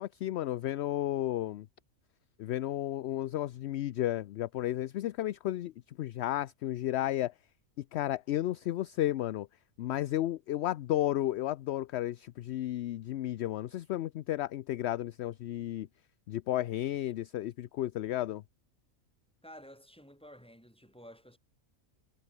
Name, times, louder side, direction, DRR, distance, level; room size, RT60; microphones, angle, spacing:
voice 1, 0.0-1.7 2.4-7.3 7.8-9.5 9.8-15.9 16.3-18.4, left 13 dB, 65° left, 0.7 m, -33 dB
voice 2, 19.4-21.4, equal, 5° left, 5.6 m, -52 dB
omnidirectional pair, 1.4 m